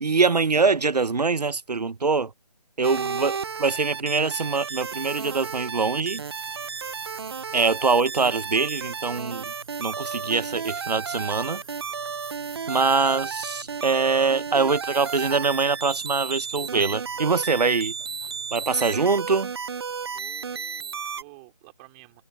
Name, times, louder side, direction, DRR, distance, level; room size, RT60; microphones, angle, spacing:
voice 1, 0.0-2.3 2.8-6.2 7.5-9.5 9.8-11.6 12.7-17.9 18.5-19.5, right 4 dB, 80° right, 1.0 m, -23 dB
sound 1, 2.8-21.2, right 6 dB, 40° right, 0.8 m, -33 dB
voice 2, 3.2-3.7 20.1-22.2, right 29 dB, 15° right, 3.5 m, -51 dB
sound 2, 3.3-19.5, right 4 dB, 60° right, 4.9 m, -47 dB
figure-of-eight pair, 160°, 20 cm